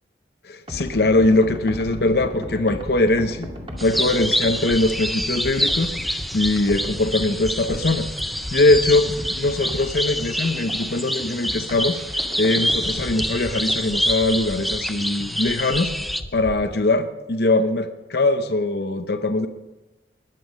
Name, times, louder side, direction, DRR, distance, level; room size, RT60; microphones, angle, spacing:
voice 1, 0.4-3.5 3.8-8.1 8.5-12.0 12.4-16.0 16.3-19.5, left 2 dB, 60° left, 8 dB, 0.7 m, -21 dB
sound 1, 0.7-16.7, equal, 30° right, 2.3 m, -35 dB
sound 2, 3.8-16.2, equal, ahead, 0.5 m, -27 dB
20.5 x 9.3 x 5.3 m, 1.1 s
head